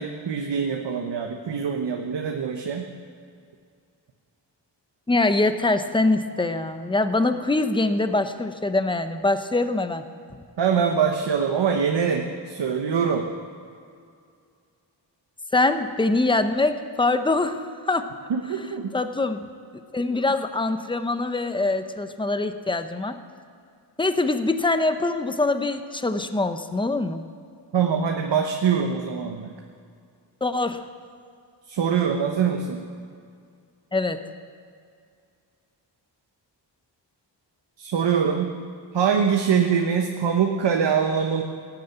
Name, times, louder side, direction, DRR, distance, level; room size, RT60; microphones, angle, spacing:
voice 1, 0.0-2.9 10.6-13.3 18.3-18.9 27.7-29.5 31.7-32.8 37.8-38.5 38.9-41.4, right 7 dB, 75° right, 3 dB, 1.1 m, -23 dB
voice 2, 5.1-10.0 15.5-18.1 18.9-19.5 19.9-23.2 24.0-27.2 30.4-30.9 33.9-34.2, left 2 dB, 10° left, 9 dB, 0.7 m, -23 dB
17.5 x 8.9 x 8.0 m, 2.3 s
wide cardioid pair, 155°, 43 cm